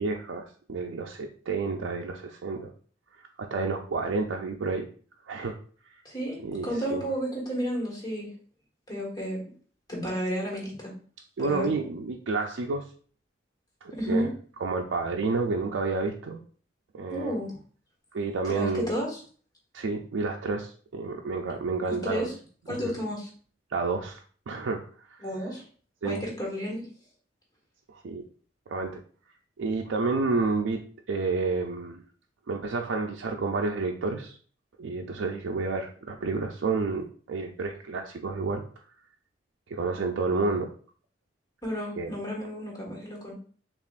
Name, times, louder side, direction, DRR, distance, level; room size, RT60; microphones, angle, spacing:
voice 1, 0.0-2.7 3.4-4.9 5.3-5.6 6.4-7.0 11.4-12.9 13.8-14.3 14.6-16.4 16.9-17.3 18.1-18.9 19.7-22.3 22.7-22.8 23.7-24.8 25.1-25.2 26.0-26.2 27.9-28.2 28.7-29.0 29.6-30.8 31.1-32.0 32.5-34.4 34.8-38.6 39.7-40.7 42.0-42.1, right 3 dB, 85° right, 1 dB, 0.4 m, -30 dB
voice 2, 6.0-8.3 8.9-9.4 9.9-10.9 11.4-11.7 13.9-14.3 17.1-17.6 18.4-19.2 22.0-22.3 22.7-23.3 25.2-25.6 26.0-26.8 41.6-43.3, equal, 20° left, -3 dB, 1.5 m, -32 dB
6.7 x 2.4 x 2.4 m, 0.43 s
head